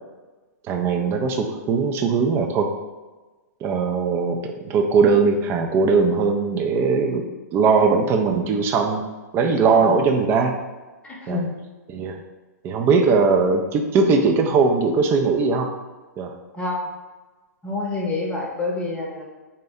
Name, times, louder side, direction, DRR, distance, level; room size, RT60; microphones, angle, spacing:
voice 1, 0.7-2.7 3.6-7.3 7.5-9.0 9.3-10.5 11.3-11.4 11.9-12.2 12.6-15.7 16.2-16.3, right 4 dB, 25° right, 4 dB, 0.4 m, -20 dB
voice 2, 11.0-11.5 16.5-16.9 17.6-19.2, left 2 dB, 10° left, -2 dB, 0.8 m, -27 dB
4.1 x 2.2 x 3.5 m, 1.2 s
figure-of-eight pair, 110°, 10 cm